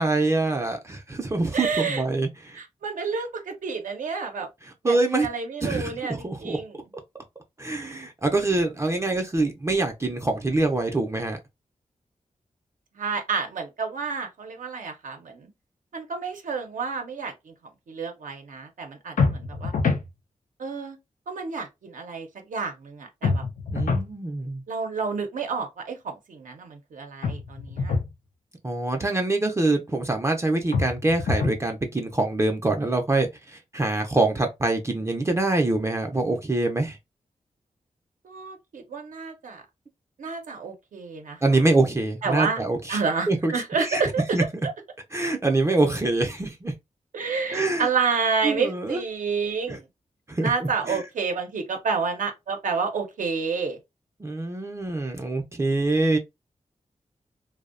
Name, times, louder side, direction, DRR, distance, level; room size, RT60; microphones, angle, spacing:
voice 1, 0.0-2.6 4.8-5.3 5.6-6.6 7.6-11.4 23.7-24.6 28.6-37.0 41.4-43.0 43.3-43.5 43.8-44.0 44.3-44.4 45.1-46.7 47.5-47.9 48.4-49.0 49.7-49.8 50.3-51.0 54.2-56.2, right 2 dB, 20° right, 0.4 m, -25 dB
voice 2, 1.5-2.0 2.6-4.5 4.8-6.7 13.0-15.5 15.9-17.5 17.9-19.7 20.6-21.0 21.3-23.4 24.7-28.0 38.2-39.6 40.2-41.4 42.2-42.6 42.9-44.2 47.1-49.8 50.4-53.8, right 5 dB, 80° right, 0.5 m, -29 dB
sound 1, 19.2-20.1 23.2-24.1 27.2-28.1 30.7-31.6, left 4 dB, 85° left, 0.4 m, -25 dB
2.5 x 2.0 x 2.4 m
wide cardioid pair, 95°, 13 cm